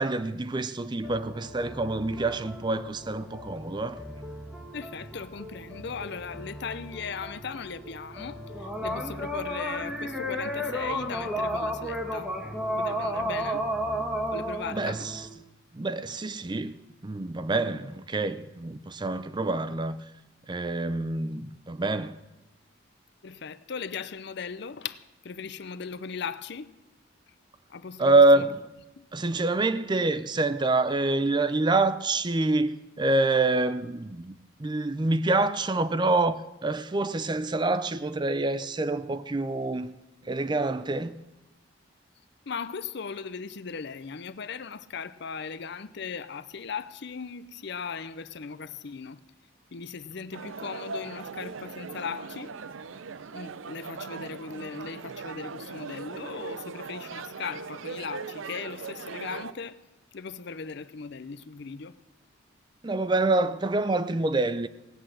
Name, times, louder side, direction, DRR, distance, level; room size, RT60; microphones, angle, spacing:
voice 1, 0.0-4.0 14.7-15.3 15.7-16.7 17.0-20.0 20.5-22.2 28.0-28.7 29.1-39.9 40.2-41.2 62.8-64.7, right 2 dB, 20° right, 0.5 m, -26 dB
sound 1, 1.0-15.3, equal, 5° right, 1.4 m, -34 dB
voice 2, 4.7-12.3 12.8-13.7 14.3-15.1 23.2-26.8 27.7-28.4 29.0-29.1 42.5-49.2 49.7-52.5 53.3-59.8 60.1-62.0, left 5 dB, 60° left, 0.6 m, -38 dB
sound 2, 50.3-59.5, right 5 dB, 80° right, 0.6 m, -39 dB
17.5 x 8.6 x 7.5 m
head